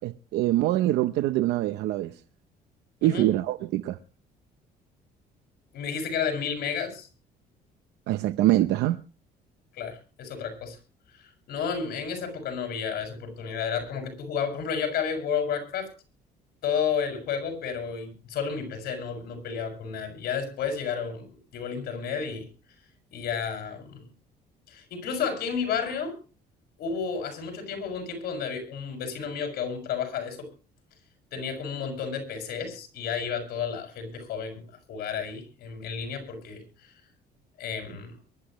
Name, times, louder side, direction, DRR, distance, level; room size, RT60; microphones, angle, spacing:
voice 1, 0.0-2.2 3.0-4.0 8.1-9.0, right 14 dB, 85° right, 0.8 m, -24 dB
voice 2, 5.7-7.1 9.8-10.8 11.2-15.9 16.6-22.5 23.1-24.0 24.7-26.2 26.8-30.5 31.3-36.6 37.6-38.1, left 6 dB, 70° left, 6.6 m, -31 dB
23.0 x 12.0 x 3.1 m
cardioid pair, 110°, 17 cm